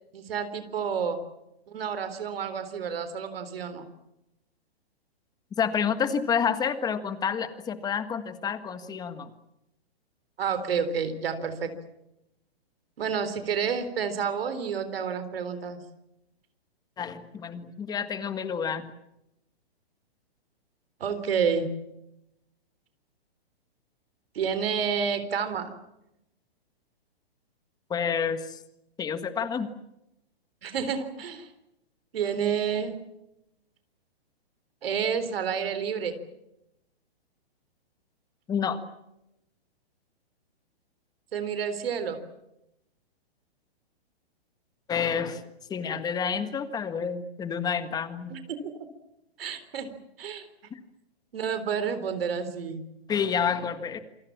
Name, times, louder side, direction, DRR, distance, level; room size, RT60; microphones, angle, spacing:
voice 1, 0.1-1.2 1.7-3.8 10.4-11.7 13.0-15.8 21.0-21.8 24.3-25.7 30.6-31.5 32.1-33.0 34.8-36.2 41.3-42.2 48.3-48.9 49.4-49.9 50.2-50.5 51.3-52.8, right 6 dB, 65° right, 11 dB, 3.9 m, -29 dB
voice 2, 5.6-9.3 17.0-18.8 27.9-28.6 29.0-29.7 38.5-38.8 44.9-45.4 45.7-48.3 50.7-50.8 53.1-54.0, left 7 dB, 10° left, 11 dB, 1.7 m, -29 dB
28.0 x 23.0 x 7.4 m, 0.88 s
hypercardioid pair, 150°, 31 cm